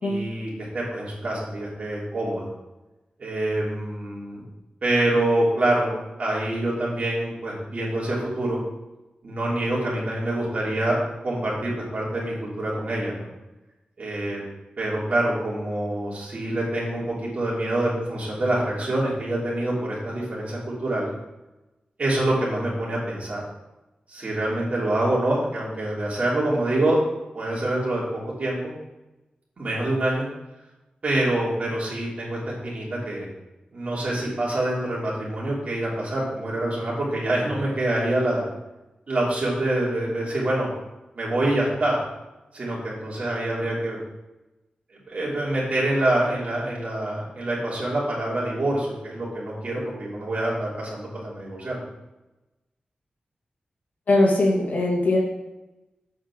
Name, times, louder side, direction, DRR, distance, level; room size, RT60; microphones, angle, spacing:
voice 1, 0.0-2.5 3.2-4.4 4.8-5.9 6.2-8.6 9.2-11.0 11.2-13.3 14.0-14.4 14.8-21.1 22.0-23.4 24.1-27.0 27.3-28.7 29.6-30.3 31.0-33.3 33.7-38.4 39.1-40.7 41.1-42.0 42.5-44.0 45.1-51.8, right 1 dB, 50° right, -5 dB, 3.2 m, -26 dB
voice 2, 54.1-55.2, left 2 dB, 75° left, -2 dB, 1.7 m, -20 dB
7.9 x 5.0 x 6.1 m, 1.0 s
wide cardioid pair, 140°, 3 cm